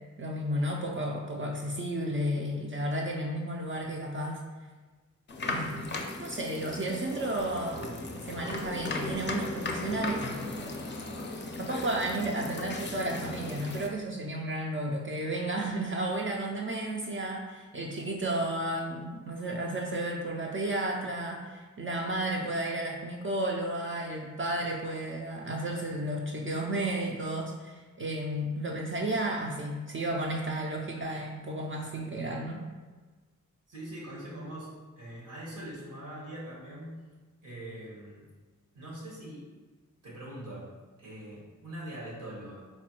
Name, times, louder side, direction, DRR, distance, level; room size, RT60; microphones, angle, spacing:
voice 1, 0.2-4.4 5.4-5.9 6.2-7.8 8.2-10.2 11.6-32.6, right 1 dB, 40° right, -1 dB, 0.4 m, -33 dB
sound 1, 5.3-13.9, left 2 dB, 35° left, 0.4 m, -36 dB
voice 2, 33.7-37.0 37.4-38.3 38.7-39.5 40.0-42.6, right 1 dB, 85° right, -5 dB, 1.2 m, -42 dB
4.1 x 2.2 x 2.9 m, 1.3 s
wide cardioid pair, 65°, 31 cm